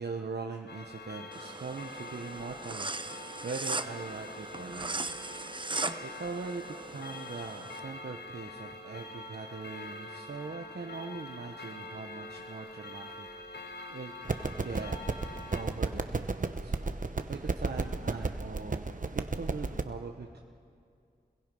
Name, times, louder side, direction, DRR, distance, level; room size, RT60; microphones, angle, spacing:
voice 1, 0.0-5.0 5.5-5.7 6.0-14.1 14.6-15.0 15.5-20.4, right 4 dB, 75° right, 2 dB, 1.0 m, -41 dB
Clock, 0.7-15.6, left 2 dB, 80° left, 1.6 m, -45 dB
sound 1, 1.3-7.8, right 3 dB, 30° right, 0.8 m, -39 dB
sound 2, 14.3-19.8, right 3 dB, 50° right, 1.0 m, -33 dB
29.5 x 21.5 x 5.4 m, 2.3 s
wide cardioid pair, 50°, 17 cm